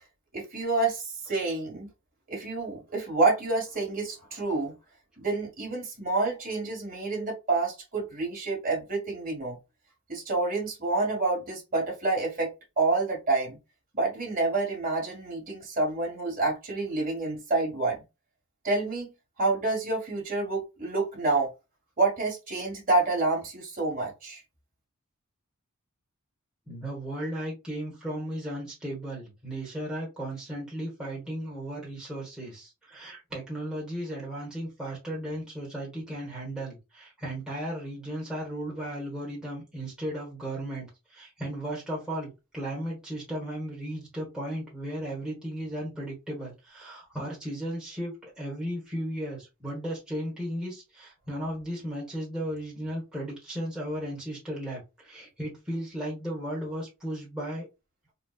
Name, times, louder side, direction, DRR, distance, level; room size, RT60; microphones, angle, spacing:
voice 1, 0.3-1.9 2.3-4.7 5.2-9.6 10.1-12.5 12.8-13.6 13.9-18.0 18.6-19.1 19.4-21.5 22.0-24.4, right 3 dB, 40° right, 1.6 m, -28 dB
voice 2, 26.7-57.7, right 1 dB, 5° right, 1.3 m, -35 dB
4.0 x 2.3 x 2.4 m
head